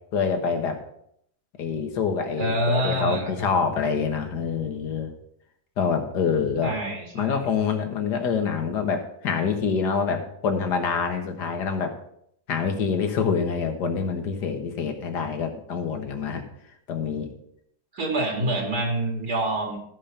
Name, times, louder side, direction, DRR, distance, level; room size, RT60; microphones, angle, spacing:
voice 1, 0.1-0.8 1.6-5.1 5.8-6.7 7.2-12.0 12.5-16.4 16.9-17.3, left 6 dB, 80° left, 5 dB, 1.9 m, -26 dB
voice 2, 2.4-3.5 6.6-7.4 17.9-19.8, right 1 dB, 70° right, 1 dB, 2.9 m, -26 dB
14.0 x 5.2 x 5.6 m, 0.71 s
omnidirectional pair, 1.8 m